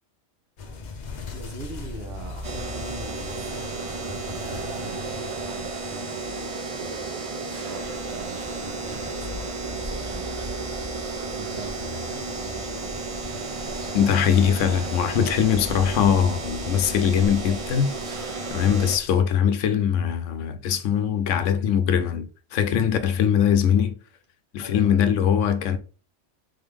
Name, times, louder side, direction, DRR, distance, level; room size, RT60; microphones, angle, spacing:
sound 1, 0.6-19.1, left 4 dB, 45° left, 0.7 m, -41 dB
voice 1, 1.3-7.2 7.5-11.1 11.3-13.0 24.6-25.2, right 2 dB, 55° right, 1.3 m, -43 dB
sound 2, 2.4-19.0, right 3 dB, 40° right, 0.5 m, -33 dB
sound 3, 7.8-19.3, equal, 20° right, 0.9 m, -41 dB
voice 2, 13.9-17.9 18.5-23.9 24.5-25.8, left 8 dB, 80° left, 0.9 m, -21 dB
3.8 x 3.5 x 3.4 m
omnidirectional pair, 1.3 m